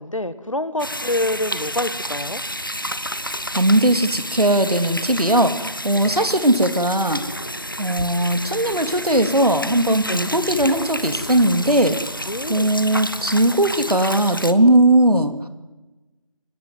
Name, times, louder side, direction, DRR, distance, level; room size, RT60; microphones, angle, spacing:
voice 1, 0.0-2.4 6.0-6.1 10.1-10.3 12.3-12.7, left 1 dB, 60° left, 13 dB, 1.9 m, -26 dB
sound 1, 0.8-14.5, equal, 35° left, 1.1 m, -30 dB
voice 2, 3.5-7.2 7.8-12.0 12.5-15.4, right 1 dB, 90° right, 9 dB, 3.1 m, -18 dB
sound 2, 4.3-4.4 4.8-5.4 5.8-6.0 6.3-6.4 6.8-7.4 7.8-8.0 8.3-8.4 8.8-9.4 9.8-10.0 10.3-10.4 10.8-11.4 11.8-12.0, right 1 dB, 20° left, 1.5 m, -43 dB
23.5 x 18.5 x 9.5 m, 1.1 s
figure-of-eight pair, 180°, 19 cm